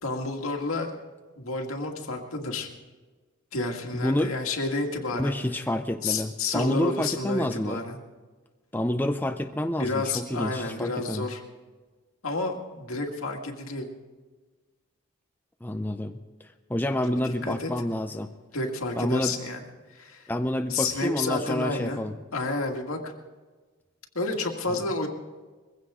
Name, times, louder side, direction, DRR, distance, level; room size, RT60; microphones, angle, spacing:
voice 1, 0.0-1.0 1.4-2.7 3.5-5.4 6.0-8.0 9.8-11.4 12.2-13.9 17.0-17.7 18.5-19.6 19.9-20.3 20.7-22.0 22.3-23.1 24.1-25.1, left 3 dB, 80° left, 2 dB, 2.1 m, -30 dB
voice 2, 3.9-4.3 5.2-7.8 8.7-11.3 15.6-16.2 16.7-18.3 19.0-19.4 20.3-22.1, left 1 dB, 10° left, 6 dB, 0.5 m, -28 dB
22.0 x 16.0 x 3.7 m, 1.3 s
head